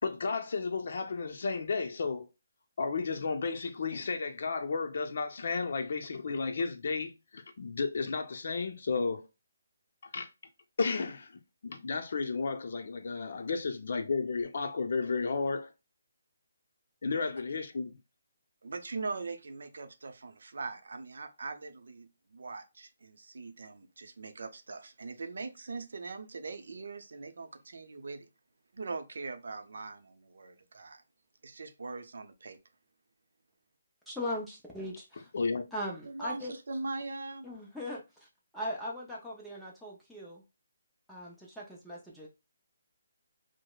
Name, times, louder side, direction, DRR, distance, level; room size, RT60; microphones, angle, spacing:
voice 1, 0.0-2.3 2.8-9.3 10.1-10.3 10.8-15.7 17.0-18.0 35.3-35.6, left 4 dB, 50° left, 0.6 m, -33 dB
voice 2, 18.6-28.3 28.7-31.0 31.4-32.6 36.0-37.5, right 3 dB, 70° right, 0.6 m, -41 dB
voice 3, 34.1-35.3 35.7-36.5 37.4-38.3 38.5-40.4 41.1-42.3, left 1 dB, ahead, 0.5 m, -39 dB
4.8 x 2.0 x 2.3 m
hypercardioid pair, 175°, 0 cm